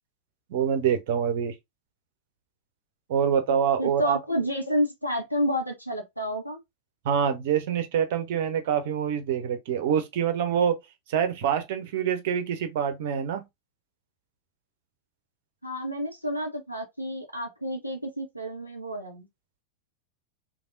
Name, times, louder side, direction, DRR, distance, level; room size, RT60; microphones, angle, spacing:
voice 1, 0.5-1.5 3.1-4.2 7.0-10.8 11.1-13.4, right 8 dB, 55° right, 0.7 m, -25 dB
voice 2, 3.8-6.6 15.6-19.3, equal, 90° left, 1.0 m, -30 dB
3.4 x 2.6 x 2.6 m
figure-of-eight pair, 90°, 0 cm